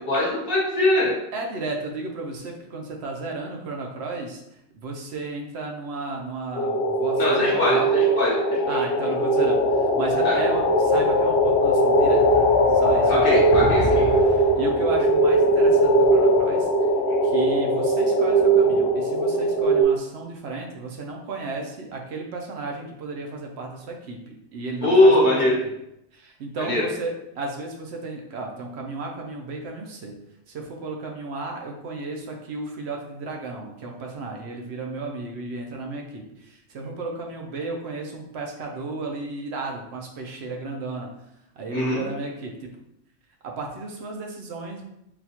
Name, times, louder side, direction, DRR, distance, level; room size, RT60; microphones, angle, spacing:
voice 1, 0.1-1.1 7.2-8.8 10.2-10.3 13.1-14.0 24.8-25.6 26.6-26.8 41.7-42.0, left 1 dB, 50° left, -6 dB, 1.1 m, -21 dB
voice 2, 1.3-4.4 4.7-7.9 8.7-12.5 12.7-16.7 17.2-25.5 26.1-30.1 30.5-41.1 41.6-42.7 43.4-44.8, right 3 dB, 65° right, 1 dB, 0.8 m, -34 dB
sound 1, 6.5-19.8, right 1 dB, 65° left, 0.8 m, -20 dB
4.1 x 2.3 x 2.8 m, 0.82 s
omnidirectional pair, 1.3 m